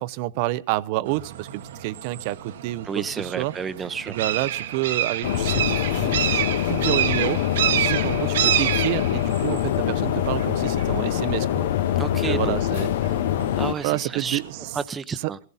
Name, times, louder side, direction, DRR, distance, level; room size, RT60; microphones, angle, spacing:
voice 1, 0.0-3.5 4.1-11.7 12.2-12.9 13.8-14.6 15.2-15.3, right 17 dB, 50° right, 0.6 m, -29 dB
sound 1, 1.1-14.8, right 10 dB, 75° right, 1.2 m, -29 dB
voice 2, 2.8-4.2 12.0-12.5 13.5-14.4 14.7-15.4, right 6 dB, 20° right, 0.8 m, -30 dB
sound 2, 5.2-13.7, left 11 dB, 65° left, 0.7 m, -24 dB
17.0 x 14.5 x 4.1 m
hypercardioid pair, 120°, 0 cm